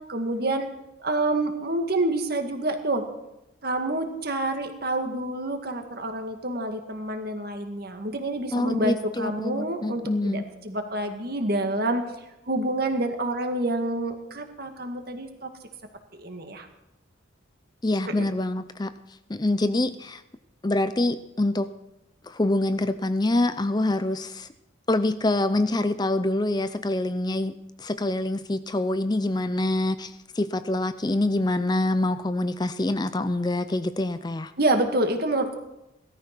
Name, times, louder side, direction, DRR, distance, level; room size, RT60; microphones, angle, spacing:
voice 1, 0.1-0.7 1.0-3.1 3.6-12.0 12.5-15.5 16.1-16.7 18.1-18.3 34.6-35.5, right 2 dB, 50° right, 5 dB, 2.1 m, -27 dB
voice 2, 8.5-10.4 17.8-18.9 19.3-20.2 20.6-21.7 22.2-24.5 24.9-27.5 27.8-34.5, left 2 dB, 20° left, 12 dB, 0.5 m, -25 dB
17.5 x 13.5 x 6.1 m, 0.90 s
head